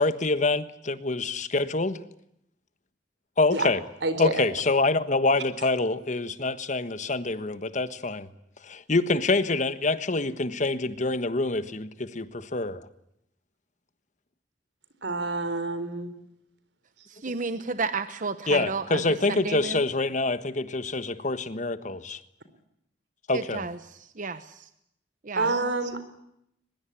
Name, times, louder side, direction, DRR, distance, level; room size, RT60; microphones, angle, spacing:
voice 1, 0.0-2.0 3.4-3.8 4.2-8.3 8.6-12.8 18.5-22.2 23.3-23.7, left 2 dB, 45° left, 1.4 m, -26 dB
voice 2, 4.0-4.3 15.0-16.1 25.3-26.0, right 2 dB, 90° right, 4.1 m, -27 dB
voice 3, 17.1-19.8 23.3-24.6 25.2-25.5, right 4 dB, 50° right, 1.0 m, -32 dB
22.5 x 21.5 x 9.9 m
head